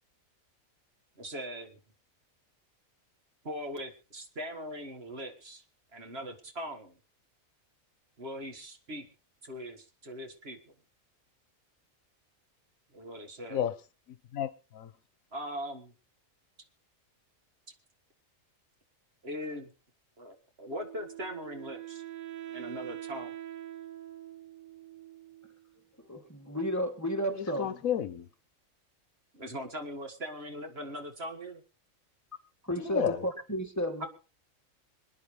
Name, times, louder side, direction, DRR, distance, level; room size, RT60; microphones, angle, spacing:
voice 1, 1.2-1.8 3.4-5.6 5.9-7.0 8.2-9.1 9.4-10.6 12.9-13.7 15.3-15.9 19.2-19.7 20.2-22.0 22.5-23.4 29.3-31.6 34.0-34.1, equal, 50° right, 2.0 m, -40 dB
voice 2, 14.3-14.9 27.3-28.3 32.8-33.2, left 9 dB, 80° left, 1.3 m, -32 dB
Wind instrument woodwind instrument, 20.7-25.7, right 13 dB, 75° right, 1.4 m, -44 dB
voice 3, 26.1-27.7 32.6-34.1, equal, 10° left, 2.3 m, -32 dB
27.0 x 9.8 x 3.2 m
omnidirectional pair, 1.4 m